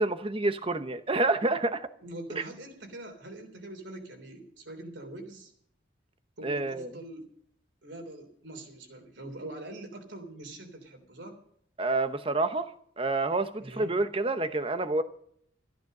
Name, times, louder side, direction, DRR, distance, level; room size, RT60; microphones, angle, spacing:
voice 1, 0.0-1.9 2.4-2.5 6.4-6.9 11.8-12.7 13.0-15.0, right 2 dB, 25° right, 11 dB, 0.9 m, -28 dB
voice 2, 2.0-5.5 6.4-7.3 7.8-11.4 13.6-13.9, right 1 dB, 65° right, 4 dB, 3.3 m, -43 dB
14.5 x 10.5 x 6.6 m, 0.66 s
head